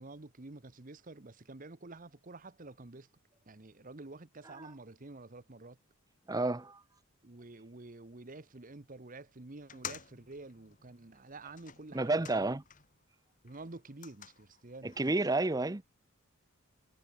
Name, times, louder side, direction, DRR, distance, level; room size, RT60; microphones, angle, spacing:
voice 1, 0.0-3.1 3.5-5.8 7.2-12.5 13.4-14.9, right 2 dB, 35° right, 1.1 m, -49 dB
voice 2, 6.3-6.8 11.9-12.6 14.8-15.8, right 2 dB, 15° right, 0.7 m, -30 dB
sound 1, 9.6-13.0 13.4-15.4, left 8 dB, 35° left, 2.1 m, -50 dB
head